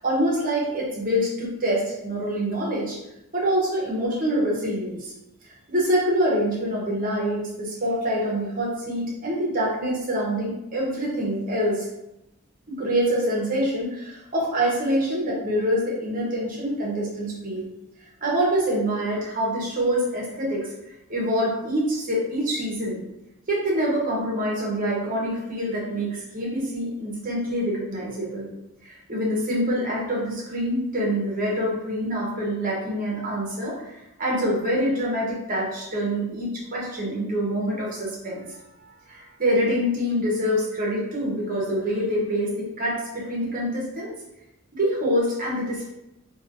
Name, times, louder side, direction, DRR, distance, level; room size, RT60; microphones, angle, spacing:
voice 1, 0.0-3.0 3.3-5.1 5.4-11.9 12.7-17.7 18.2-20.7 21.1-23.0 23.5-28.5 28.8-44.1 44.7-45.9, equal, 40° right, -3 dB, 0.8 m, -26 dB
3.1 x 2.3 x 2.4 m, 0.90 s
head